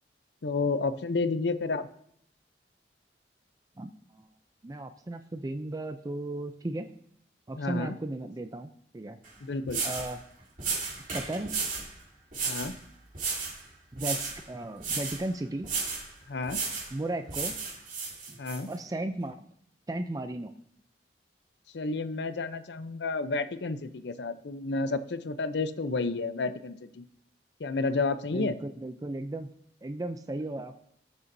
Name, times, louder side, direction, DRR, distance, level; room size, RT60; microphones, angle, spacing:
voice 1, 0.4-1.9 7.5-7.9 9.4-9.8 12.4-12.8 16.3-16.6 18.4-18.7 21.7-27.0 27.6-28.6, left 3 dB, 70° left, 12 dB, 0.6 m, -31 dB
voice 2, 3.8-4.3 4.6-6.9 7.5-9.2 9.8-10.2 11.1-11.5 13.9-15.7 16.9-17.5 18.3-18.4 18.7-19.4 19.9-20.5 28.3-29.5 29.8-30.7, right 1 dB, 20° right, 8 dB, 0.4 m, -35 dB
sound 1, 9.2-9.3 9.7-10.1 10.6-11.9 12.3-12.7 13.1-13.6 14.0-14.4 14.8-15.2 15.6-16.1 16.5-16.9 17.3-18.6, right 4 dB, 50° right, 3.3 m, -33 dB
18.5 x 6.9 x 2.7 m, 0.70 s
head